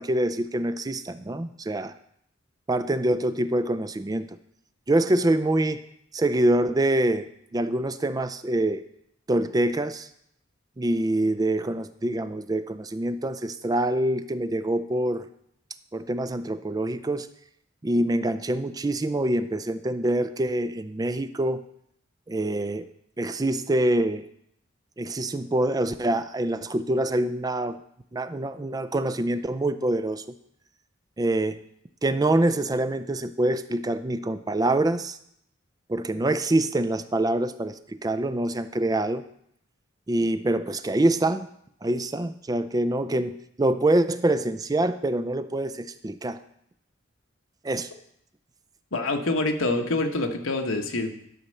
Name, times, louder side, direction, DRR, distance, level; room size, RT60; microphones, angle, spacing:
voice 1, 0.0-1.9 2.7-4.2 4.9-5.8 6.1-7.2 7.5-8.8 9.3-10.1 10.8-15.3 15.9-17.3 17.8-21.6 22.3-22.9 23.2-24.2 25.0-27.8 28.1-30.2 31.2-31.6 32.0-35.2 35.9-39.2 40.1-41.5 41.8-46.4 47.6-47.9, right 1 dB, 20° right, 11 dB, 0.4 m, -25 dB
voice 2, 48.9-51.1, left 2 dB, 80° left, 3 dB, 1.2 m, -26 dB
12.0 x 4.3 x 6.4 m, 0.72 s
head